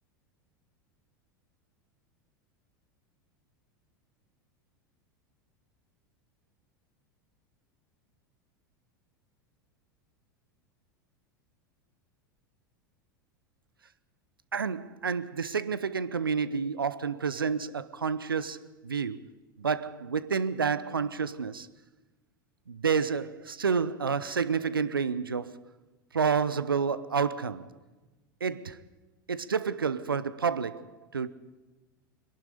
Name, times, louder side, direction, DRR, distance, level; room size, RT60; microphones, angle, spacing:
voice 1, 14.5-19.2 19.6-21.7 22.7-25.6 26.1-27.7 28.4-28.8 29.3-31.3, right 6 dB, 90° right, 0.8 m, -29 dB
23.0 x 11.5 x 9.9 m
hypercardioid pair, 85°, 11 cm